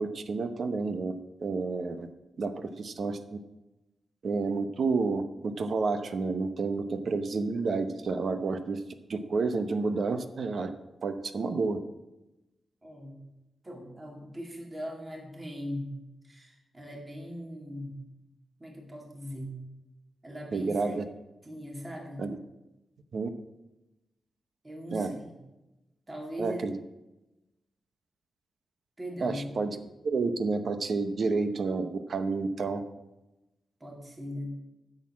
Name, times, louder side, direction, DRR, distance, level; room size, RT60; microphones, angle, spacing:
voice 1, 0.0-2.1 2.4-3.4 4.2-8.8 9.1-10.7 11.0-11.8 20.5-21.0 22.2-22.4 23.1-23.3 24.9-25.1 26.4-26.8 29.2-29.8 30.0-32.8, right 4 dB, 50° right, 9 dB, 0.8 m, -30 dB
voice 2, 12.8-13.2 13.6-18.0 18.6-19.6 20.2-21.0 21.4-22.3 24.6-25.4 26.1-26.6 29.0-29.6 33.8-34.5, equal, 20° right, -1 dB, 2.3 m, -40 dB
10.0 x 6.6 x 7.3 m, 1.0 s
wide cardioid pair, 130°, 0 cm